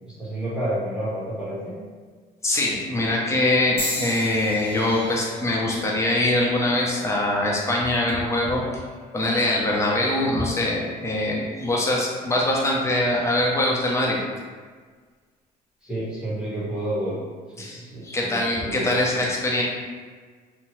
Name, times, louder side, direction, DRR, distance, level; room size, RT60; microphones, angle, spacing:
voice 1, 0.1-1.8 15.8-17.2 17.6-19.3, right 1 dB, 5° right, -10 dB, 1.2 m, -30 dB
voice 2, 2.4-8.6 9.1-14.2 17.6-19.6, left 1 dB, 15° left, -4 dB, 0.6 m, -23 dB
sound 1, 3.8-7.9 8.6-9.0 10.0-10.2, left 1 dB, 30° left, 0.9 m, -36 dB
2.7 x 2.1 x 3.1 m, 1.5 s
cardioid pair, 110°, 17 cm